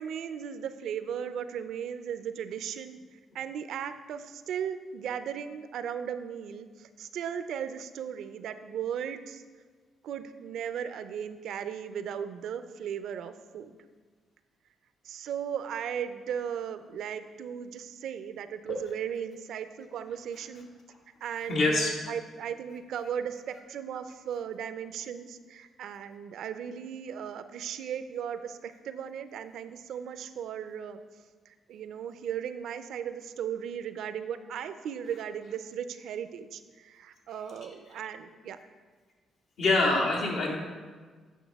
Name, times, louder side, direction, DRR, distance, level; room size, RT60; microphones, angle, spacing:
voice 1, 0.0-9.4 10.0-13.8 15.0-20.7 21.2-31.0 31.5-38.6, right 8 dB, 75° right, 11 dB, 0.4 m, -37 dB
voice 2, 21.5-21.9 39.6-40.6, left 2 dB, 80° left, -2 dB, 1.8 m, -25 dB
9.1 x 5.9 x 3.5 m, 1.5 s
cardioid pair, 90°, 0 cm